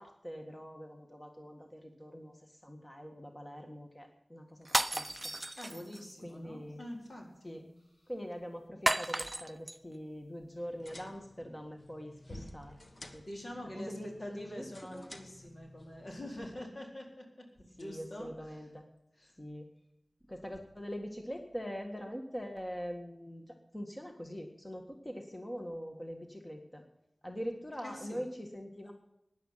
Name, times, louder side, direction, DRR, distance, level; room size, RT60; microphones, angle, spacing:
voice 1, 0.0-4.7 4.9-5.3 6.2-6.8 7.4-7.6 8.1-12.8 13.1-13.2 13.7-14.6 14.9-15.1 17.8-18.8 19.4-19.7 20.3-26.8 27.2-28.9, equal, 20° left, 3 dB, 1.7 m, -43 dB
sound 1, 4.6-6.1 8.9-9.8, right 1 dB, 20° right, 0.5 m, -33 dB
voice 2, 5.6-7.6 13.3-17.5 17.8-18.6 19.2-19.3 27.8-28.2, left 1 dB, 65° left, 0 dB, 4.1 m, -45 dB
sound 2, 10.6-16.6, left 1 dB, 45° left, 1.4 m, -53 dB
16.5 x 10.5 x 5.7 m, 0.85 s
wide cardioid pair, 70°, 0 cm